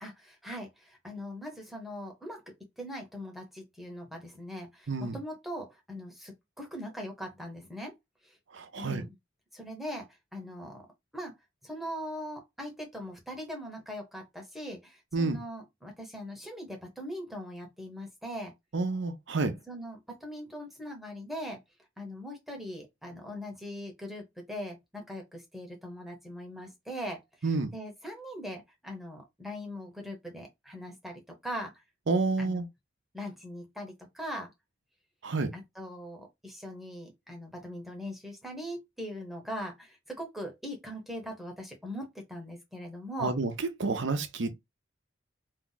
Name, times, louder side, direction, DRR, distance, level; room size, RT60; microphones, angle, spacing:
voice 1, 0.0-2.4 2.8-7.9 8.2-8.4 8.8-9.1 9.5-10.9 11.1-11.3 11.6-18.5 19.7-21.6 22.0-27.2 27.7-31.8 32.4-32.6 33.1-34.5 35.5-43.3, equal, ahead, 0.9 m, -41 dB
voice 2, 8.5-9.0 15.1-15.4 18.7-19.6 27.4-27.7 32.1-32.6 35.2-35.5 43.2-44.5, right 3 dB, 65° right, 0.7 m, -29 dB
2.7 x 2.3 x 3.9 m
head